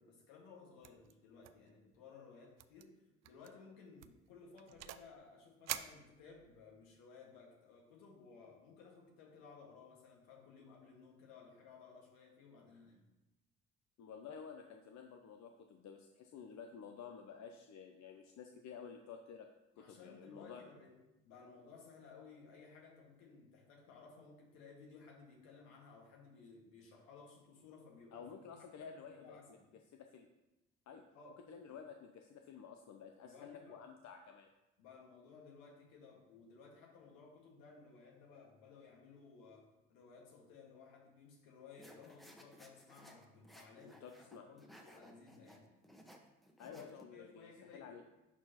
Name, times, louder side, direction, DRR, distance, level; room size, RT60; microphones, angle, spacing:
voice 1, 0.0-2.9 3.2-13.0 19.8-20.9 21.2-28.5 28.8-29.7 31.1-31.4 33.2-33.8 34.8-45.7 46.6-47.9, left 5 dB, 70° left, -1 dB, 1.9 m, -58 dB
sound 1, 0.8-1.1 1.4-2.0 2.6-2.8 3.2-3.5 4.0-5.1 5.7-6.6, right 12 dB, 50° right, 0.5 m, -46 dB
voice 2, 14.0-19.5 19.8-20.6 28.1-29.6 29.9-30.3 30.9-31.0 31.5-34.5 43.8-44.5 46.6-48.0, left 6 dB, 55° left, 4 dB, 0.7 m, -52 dB
sound 2, 41.8-47.0, equal, ahead, 1.2 m, -60 dB
11.0 x 4.4 x 3.0 m, 1.0 s
hypercardioid pair, 45°, 34 cm